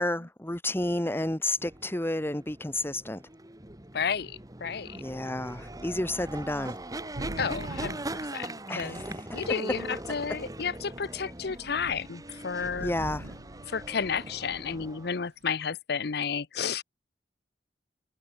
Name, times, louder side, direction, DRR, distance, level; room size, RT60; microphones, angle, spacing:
voice 1, 0.0-3.2 4.9-6.8 8.7-9.5 12.6-13.3, left 1 dB, 15° left, 1.5 m, -31 dB
sound 1, 1.6-15.2, right 1 dB, 20° right, 2.8 m, -41 dB
voice 2, 3.9-5.0 7.4-9.0 9.3-12.9 13.7-16.8, left 6 dB, 65° left, 0.7 m, -32 dB
Thunder / Rain, 4.7-4.8 5.1-9.2 9.9-10.4 10.8-11.0 11.2-15.0, right 1 dB, 80° right, 1.7 m, -44 dB
head